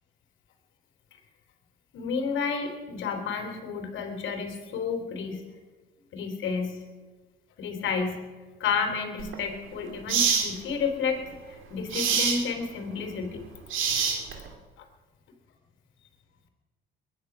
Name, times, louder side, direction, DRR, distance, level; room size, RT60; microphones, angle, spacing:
voice 1, 1.9-5.4 6.1-6.8 7.6-8.2 8.6-13.5, left 5 dB, 65° left, 5 dB, 3.5 m, -31 dB
sound 1, 9.2-9.4 10.1-10.5 11.9-12.4 13.7-14.5, right 6 dB, 70° right, 2.8 m, -25 dB
21.5 x 10.0 x 6.1 m, 1.4 s
supercardioid pair, 80°, 21 cm